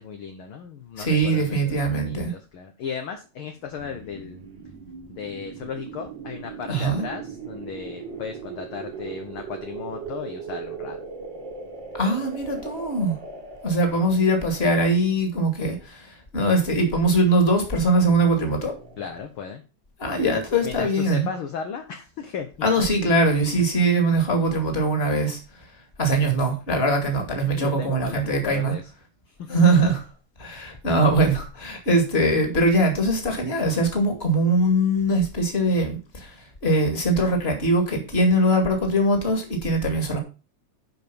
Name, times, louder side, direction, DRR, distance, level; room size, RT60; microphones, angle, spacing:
voice 1, 0.0-4.5 5.1-11.0 19.0-19.6 20.6-22.5 23.6-23.7 27.5-28.9 29.3-29.8, left 6 dB, 60° left, 1.6 m, -35 dB
voice 2, 1.0-2.3 6.7-7.0 12.0-13.2 13.6-18.7 20.0-21.3 22.6-25.6 26.0-28.7 29.5-30.0 30.4-40.2, right 1 dB, 20° left, 2.3 m, -22 dB
sound 1, 3.5-15.2 17.9-19.4, right 5 dB, 45° right, 2.0 m, -39 dB
10.5 x 5.1 x 5.5 m
omnidirectional pair, 3.3 m